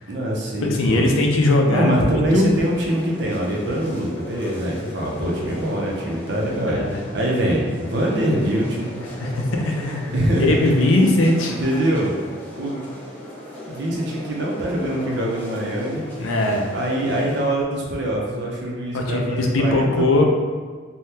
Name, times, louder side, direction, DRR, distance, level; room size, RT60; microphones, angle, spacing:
voice 1, 0.1-1.1 1.7-8.9 10.1-10.7 11.5-12.1 12.5-12.8 13.7-16.0 16.7-20.3, right 1 dB, 55° right, -2 dB, 0.6 m, -23 dB
voice 2, 0.6-2.5 6.7-7.0 9.2-10.1 10.4-11.5 16.2-16.7 18.9-20.2, left 2 dB, 80° left, 1 dB, 0.5 m, -20 dB
sound 1, 2.5-17.5, left 1 dB, 10° left, 0.5 m, -36 dB
3.4 x 2.2 x 2.8 m, 1.5 s
head